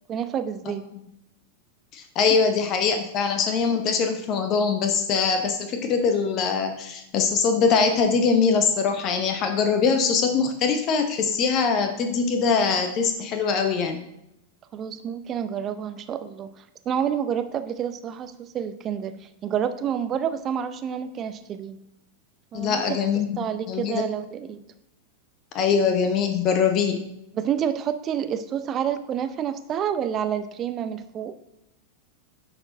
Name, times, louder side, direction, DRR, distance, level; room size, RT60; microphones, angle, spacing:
voice 1, 0.1-0.8 14.7-16.5 16.9-19.1 19.4-21.8 22.5-22.8 23.4-24.6 27.3-31.4, right 8 dB, 30° right, 10 dB, 0.6 m, -28 dB
voice 2, 1.9-14.0 22.5-23.4 23.7-24.0 25.5-27.0, left 5 dB, 35° left, 6 dB, 0.7 m, -22 dB
9.9 x 4.4 x 3.9 m, 0.85 s
figure-of-eight pair, 90°, 0 cm